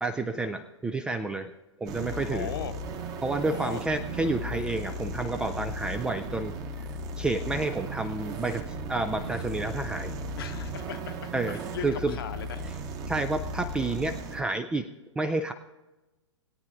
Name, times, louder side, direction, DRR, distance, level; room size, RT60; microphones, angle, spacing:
voice 1, 0.0-1.5 1.8-2.5 3.2-6.9 7.2-10.1 11.3-12.2 12.7-12.8 13.1-14.9 15.2-15.5, right 2 dB, 5° right, 8 dB, 0.4 m, -30 dB
sound 1, 1.9-14.4, right 1 dB, 25° right, 1.1 m, -36 dB
voice 2, 2.3-2.7 3.5-3.8 10.4-12.7, left 8 dB, 50° left, 9 dB, 1.0 m, -38 dB
20.5 x 9.3 x 2.5 m, 1.0 s
figure-of-eight pair, 115°, 16 cm